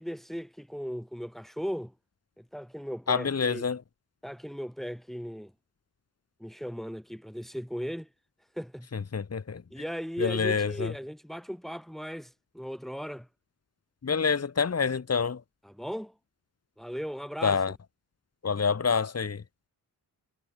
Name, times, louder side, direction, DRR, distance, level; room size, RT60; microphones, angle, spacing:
voice 1, 0.0-1.9 2.4-3.7 4.2-5.5 6.4-8.1 8.5-8.9 9.7-13.3 15.6-16.1 16.8-17.6, equal, ahead, 7.2 m, -37 dB
voice 2, 3.1-3.8 8.9-9.6 10.2-10.9 14.0-15.4 17.4-17.7 18.4-19.4, left 5 dB, 35° left, 5.7 m, -27 dB
cardioid pair, 125°, 41 cm